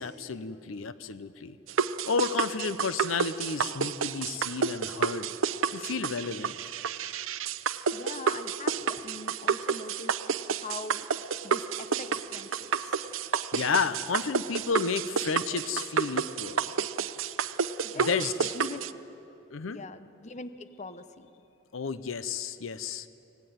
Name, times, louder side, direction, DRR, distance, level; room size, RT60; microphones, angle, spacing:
voice 1, 0.0-1.6 2.1-5.3 5.7-6.6 13.5-16.7 17.9-18.3 19.5-19.8 21.7-23.1, left 5 dB, 80° left, 14 dB, 0.7 m, -31 dB
sound 1, 1.7-18.9, right 6 dB, 75° right, 0.7 m, -30 dB
voice 2, 7.9-11.1 11.4-13.0 17.8-18.9 19.7-21.3, left 3 dB, 35° left, 11 dB, 0.9 m, -42 dB
24.5 x 18.5 x 9.4 m, 2.9 s
head